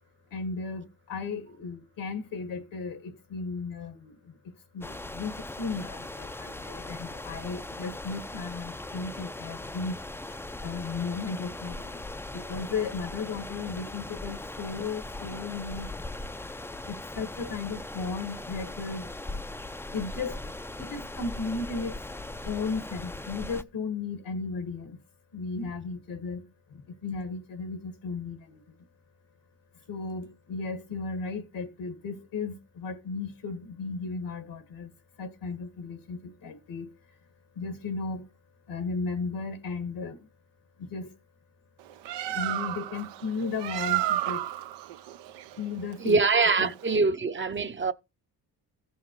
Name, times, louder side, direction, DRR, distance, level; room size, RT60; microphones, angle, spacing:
voice 1, 0.3-4.1 4.4-10.0 10.6-12.0 12.3-15.9 16.9-19.1 19.9-20.4 20.8-22.0 22.4-25.0 25.3-28.6 29.9-34.9 35.2-36.9 37.6-38.3 38.7-40.2 40.8-41.1 42.3-44.4 45.6-46.2 46.6-46.7, left 4 dB, 80° left, 1.7 m, -35 dB
sound 1, 4.8-23.6, left 2 dB, 5° left, 0.4 m, -39 dB
Bird, 41.8-47.0, right 13 dB, 85° right, 0.6 m, -32 dB
voice 2, 46.0-47.9, right 4 dB, 30° right, 0.7 m, -24 dB
15.0 x 5.6 x 3.1 m
supercardioid pair, 60°, 42 cm